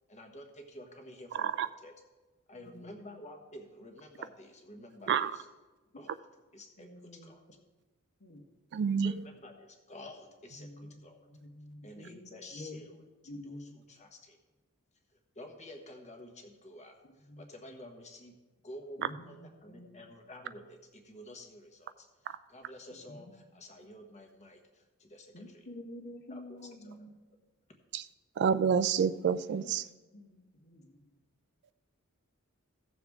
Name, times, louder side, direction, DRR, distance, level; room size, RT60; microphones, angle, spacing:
voice 1, 0.1-1.9 2.5-5.5 5.9-6.3 6.5-7.4 9.0-11.2 11.8-13.0 13.4-14.4 15.3-18.3 18.6-19.4 19.6-22.1 22.5-25.6 26.3-26.6 26.9-27.0, left 1 dB, 35° left, 4 dB, 1.2 m, -50 dB
voice 2, 1.3-1.7 5.1-5.3 8.7-9.1 27.9-28.1 28.4-29.8, right 7 dB, 50° right, 14 dB, 0.3 m, -28 dB
voice 3, 2.5-2.9 6.8-7.3 8.2-8.5 10.5-11.0 11.2-12.9 13.2-13.8 17.0-17.5 19.0-20.1 22.9-23.5 25.3-27.1 29.6-29.7 30.0-31.1, left 1 dB, 50° left, 4 dB, 1.3 m, -49 dB
16.0 x 6.9 x 3.5 m, 1.2 s
head